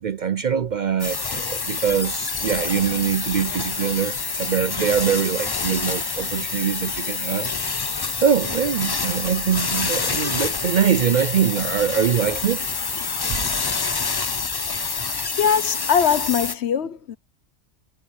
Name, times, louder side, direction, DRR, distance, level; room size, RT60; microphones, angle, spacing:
voice 1, 0.0-7.5 8.2-12.7, right 8 dB, 55° right, 0.5 m, -23 dB
sound 1, 1.0-16.5, left 5 dB, 30° left, 0.4 m, -27 dB
voice 2, 15.4-17.2, left 7 dB, 65° left, 1.1 m, -21 dB
omnidirectional pair, 1.2 m